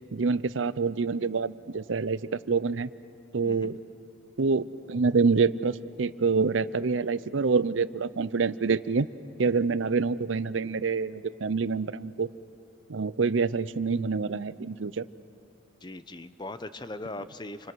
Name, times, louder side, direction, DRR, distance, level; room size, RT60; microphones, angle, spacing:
voice 1, 0.1-2.9 3.3-3.8 4.4-9.1 9.4-12.3 12.9-15.1, right 4 dB, 90° right, 16 dB, 0.6 m, -26 dB
voice 2, 3.4-3.7 15.8-17.7, left 2 dB, 25° left, 12 dB, 0.8 m, -39 dB
30.0 x 25.0 x 6.2 m, 2.6 s
head